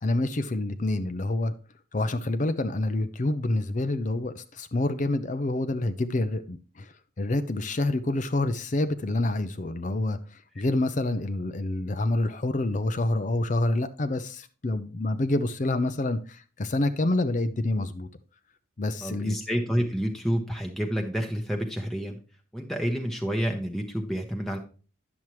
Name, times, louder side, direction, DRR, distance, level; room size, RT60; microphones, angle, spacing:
voice 1, 0.0-1.5 1.9-18.1 18.8-19.4, left 2 dB, 35° left, 0.5 m, -27 dB
voice 2, 19.0-22.2 22.5-24.6, equal, ahead, 0.9 m, -29 dB
10.5 x 7.1 x 3.1 m
head